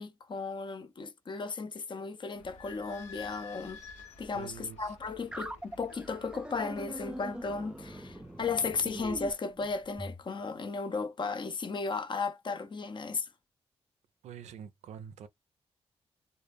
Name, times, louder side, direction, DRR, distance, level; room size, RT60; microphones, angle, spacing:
voice 1, 0.0-3.8 4.2-13.3, left 4 dB, 45° left, 0.5 m, -35 dB
Idling / Squeak, 2.4-8.8, left 4 dB, 90° left, 0.6 m, -52 dB
voice 2, 4.3-5.0 14.2-15.3, right 8 dB, 80° right, 0.4 m, -46 dB
sound 1, 5.3-10.2, right 1 dB, 10° right, 0.4 m, -42 dB
2.1 x 2.0 x 3.2 m
cardioid pair, 55°, 11 cm